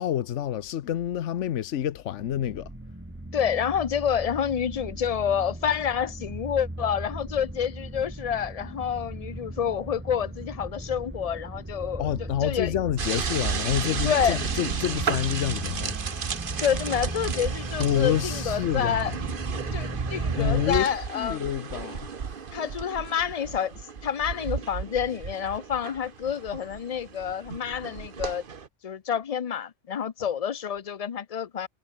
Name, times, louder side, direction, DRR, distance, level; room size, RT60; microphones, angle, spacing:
voice 1, 0.0-2.7 12.0-16.0 17.8-19.1 20.3-22.3, left 11 dB, 85° left, 1.1 m, -28 dB
sound 1, 2.2-20.8, right 1 dB, 10° right, 1.4 m, -37 dB
voice 2, 3.3-12.1 12.4-12.7 14.0-14.4 16.6-19.1 19.7-21.5 22.5-23.7 24.0-28.4 28.8-31.7, left 8 dB, 40° left, 0.6 m, -28 dB
sound 2, 13.0-28.7, right 6 dB, 50° right, 1.3 m, -33 dB
omnidirectional pair, 1.2 m